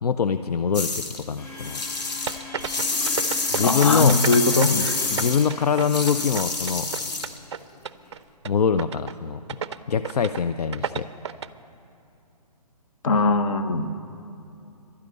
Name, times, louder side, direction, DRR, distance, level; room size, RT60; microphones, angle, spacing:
voice 1, 0.0-1.8 3.5-4.2 4.7-6.9 8.4-9.4 9.9-11.1, left 6 dB, 70° left, 11 dB, 0.5 m, -24 dB
sound 1, 0.7-1.2 1.6-7.4, left 3 dB, 90° left, 1.7 m, -27 dB
Domestic sounds home sounds, 1.4-6.9, left 1 dB, 15° left, 3.5 m, -41 dB
sound 2, 2.3-4.9 5.2-7.6 7.8-8.2 8.4-8.5 8.8-9.1 9.5-9.8 10.0-10.4 10.7-11.5, right 7 dB, 45° right, 0.4 m, -31 dB
voice 2, 3.6-5.0 13.0-13.9, left 3 dB, 55° left, 9 dB, 1.0 m, -21 dB
12.0 x 10.5 x 9.6 m, 2.7 s
hypercardioid pair, 175°, 21 cm